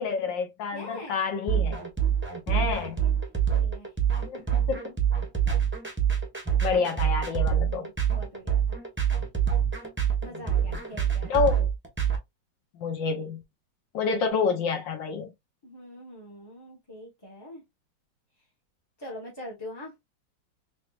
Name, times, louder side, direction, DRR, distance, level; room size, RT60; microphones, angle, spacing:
voice 1, 0.0-1.8 2.5-3.0 4.2-4.4 4.7-4.9 6.6-7.9 11.3-11.7 12.8-13.4 13.9-15.3, left 5 dB, 70° left, 1.5 m, -28 dB
voice 2, 0.7-1.2 2.5-3.9 7.6-8.8 10.2-11.3 15.6-17.6 19.0-19.9, left 1 dB, 15° left, 0.9 m, -44 dB
sound 1, 1.5-12.2, right 8 dB, 10° right, 0.6 m, -25 dB
4.0 x 3.5 x 2.3 m
omnidirectional pair, 2.1 m